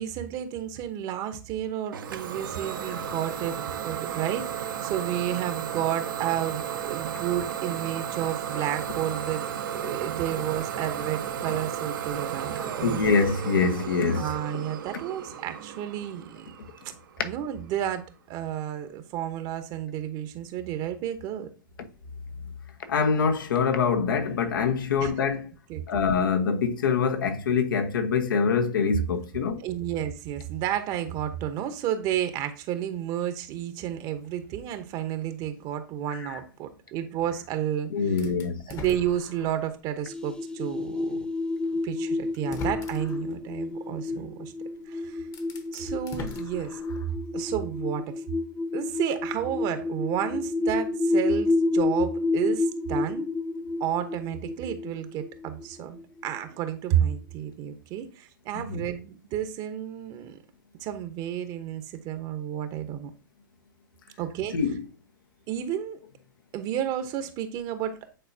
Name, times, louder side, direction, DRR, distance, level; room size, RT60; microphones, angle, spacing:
voice 1, 0.0-3.6 3.8-9.4 9.7-13.2 14.2-16.5 17.2-21.5 25.0-25.1 25.7-25.8 29.6-38.1 38.7-41.2 41.8-44.5 44.9-45.2 45.7-46.8 47.3-48.1 48.7-53.3 53.8-60.4 60.8-63.1 64.2-64.5 65.5-66.0 66.5-68.1, right 10 dB, 40° right, 1.0 m, -31 dB
Idling / Domestic sounds home sounds, 1.9-17.5, right 9 dB, 70° right, 0.9 m, -34 dB
voice 2, 12.8-14.6 22.9-25.5 25.9-29.6 36.1-36.4 37.9-38.6 44.1-44.2 58.7-58.8 64.5-64.8, left 5 dB, 75° left, 1.1 m, -25 dB
sound 1, 38.2-39.8 40.3-40.4 41.7-41.8 42.3-43.3 44.7-44.8 45.2-47.2, left 3 dB, 30° left, 1.1 m, -40 dB
sound 2, 40.1-56.4, left 2 dB, 10° left, 0.4 m, -30 dB
8.9 x 4.1 x 2.7 m
hypercardioid pair, 110°, 11 cm